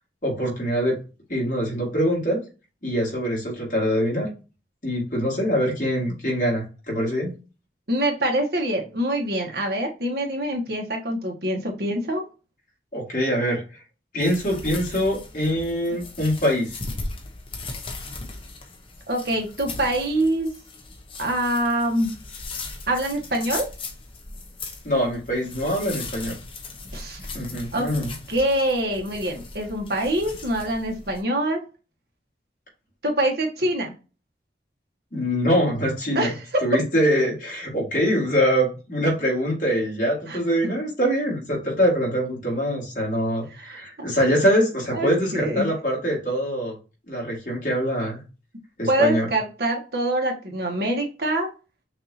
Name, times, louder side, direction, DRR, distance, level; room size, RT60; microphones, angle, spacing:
voice 1, 0.2-1.0 1.3-2.4 2.8-4.3 4.8-7.3 12.9-13.6 14.1-16.8 24.8-26.3 27.3-28.1 35.1-36.3 36.6-46.7 47.1-48.2 48.8-49.3, equal, 45° left, -3 dB, 2.4 m, -24 dB
voice 2, 7.9-12.2 15.9-16.0 19.1-20.5 21.2-22.1 22.9-23.7 26.9-27.2 27.7-27.9 28.3-31.6 33.0-33.9 36.1-36.3 40.3-40.4 43.5-43.8 44.9-45.7 48.9-51.5, right 1 dB, 60° right, 1 dB, 1.3 m, -25 dB
sound 1, 14.2-31.2, left 3 dB, 30° left, 0.8 m, -38 dB
6.0 x 2.7 x 2.8 m, 0.31 s
head